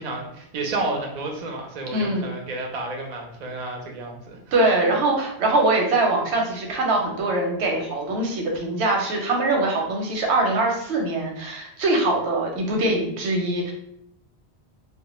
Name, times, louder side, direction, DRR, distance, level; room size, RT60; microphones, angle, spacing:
voice 1, 0.0-4.4, right 2 dB, 50° right, 2 dB, 0.5 m, -31 dB
voice 2, 1.9-2.2 4.5-13.7, right 2 dB, 90° right, 1 dB, 0.9 m, -22 dB
2.1 x 2.1 x 2.9 m, 0.74 s
omnidirectional pair, 1.1 m